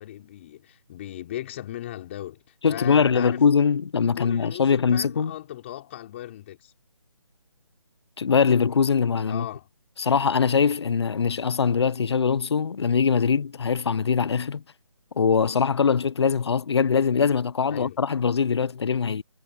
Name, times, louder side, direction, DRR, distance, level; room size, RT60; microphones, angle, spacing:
voice 1, 0.0-3.5 4.1-6.7 9.3-9.7 17.7-18.0, left 13 dB, 20° left, 4.4 m, -37 dB
voice 2, 2.6-5.3 8.2-9.5 10.0-14.6 15.2-19.2, left 6 dB, 55° left, 0.5 m, -22 dB
hypercardioid pair, 170°, 17 cm